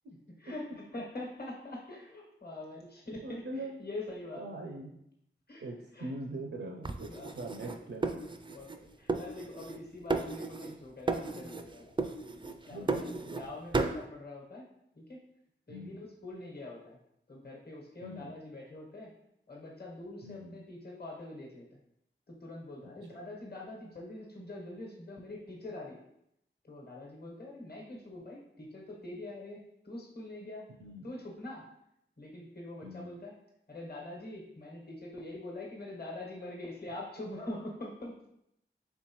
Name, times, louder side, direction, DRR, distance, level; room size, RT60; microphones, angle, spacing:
voice 1, 0.4-4.4 5.5-5.6 5.9-6.1 7.1-7.4 8.5-11.9 12.4-14.6 15.0-15.2 15.7-17.0 17.3-19.1 19.5-21.8 22.3-26.0 26.6-30.6 31.0-31.6 32.2-33.3 33.7-38.1, left 2 dB, 50° left, -2 dB, 1.2 m, -44 dB
voice 2, 3.2-3.8 4.4-5.0 5.6-8.3 12.4-13.5 15.7-16.0 18.0-18.3 20.2-20.6 30.8-31.1 32.8-33.1, right 1 dB, 85° right, 0 dB, 0.6 m, -42 dB
sound 1, 6.8-8.8 9.1-9.8 10.1-10.8 11.1-11.7 12.0-13.5 13.7-14.0, right 3 dB, 25° right, 0.3 m, -34 dB
4.4 x 3.5 x 3.0 m, 0.77 s
wide cardioid pair, 45°, 21 cm